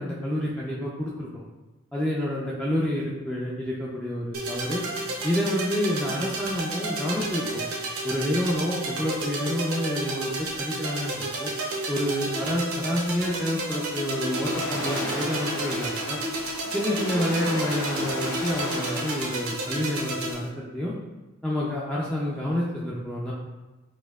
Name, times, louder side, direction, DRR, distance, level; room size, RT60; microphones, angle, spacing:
voice 1, 0.0-1.4 1.9-4.8 5.2-7.6 8.0-11.5 11.9-16.2 16.7-20.9 21.4-23.3, left 1 dB, 5° left, -6 dB, 0.3 m, -28 dB
sound 1, 4.3-20.3, right 2 dB, 75° right, 0.7 m, -31 dB
Waves surf, 13.7-20.5, left 1 dB, 80° left, 0.7 m, -36 dB
4.1 x 2.6 x 2.3 m, 1.1 s
head